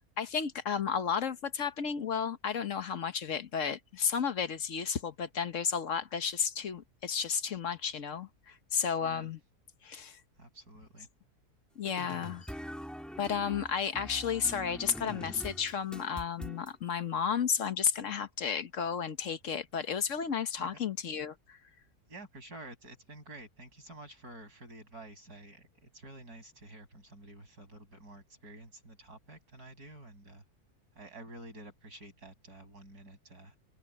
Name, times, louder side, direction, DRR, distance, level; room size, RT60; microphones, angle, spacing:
voice 1, 0.2-9.4 9.8-10.2 11.8-12.5 13.2-21.6, left 7 dB, 55° left, 1.4 m, -33 dB
voice 2, 9.0-9.3 10.4-11.1 20.6-20.7 22.1-30.4 30.9-33.6, right 2 dB, 80° right, 7.0 m, -50 dB
sound 1, 11.9-16.7, equal, ahead, 1.3 m, -44 dB
open air
omnidirectional pair, 1.6 m